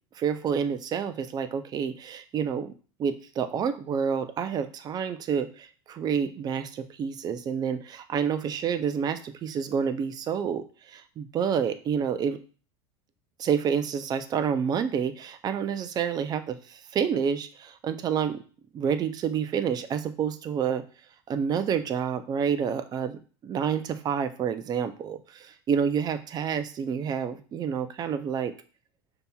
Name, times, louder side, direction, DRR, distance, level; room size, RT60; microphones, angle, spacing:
voice 1, 0.2-2.7 3.0-12.4 13.4-18.4 18.7-20.8 21.3-28.5, right 7 dB, 25° right, 9 dB, 0.4 m, -28 dB
5.2 x 2.8 x 2.3 m, 0.39 s
supercardioid pair, 120°, 15 cm